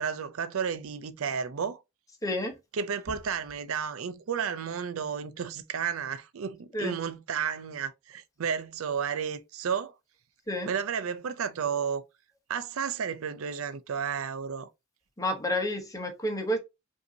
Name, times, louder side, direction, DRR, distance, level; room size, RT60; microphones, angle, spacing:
voice 1, 0.0-1.8 2.7-9.9 10.7-12.0 12.5-14.7, right 7 dB, 85° right, 0.5 m, -32 dB
voice 2, 2.2-2.5 6.7-6.9 10.5-10.7 15.2-16.6, left 1 dB, 15° left, 0.9 m, -30 dB
5.3 x 2.7 x 2.7 m
head